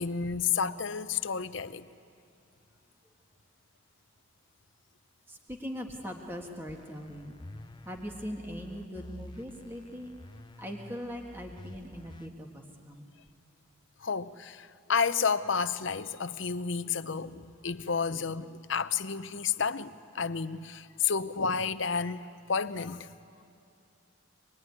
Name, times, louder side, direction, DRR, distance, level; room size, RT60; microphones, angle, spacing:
voice 1, 0.0-1.9 14.0-23.1, left 6 dB, 65° left, 0.8 m, -31 dB
voice 2, 5.3-7.4 7.9-10.1 10.6-13.0, equal, 10° right, 1.7 m, -40 dB
sound 1, 6.7-12.3, left 1 dB, 20° left, 0.6 m, -49 dB
25.5 x 21.0 x 9.7 m
head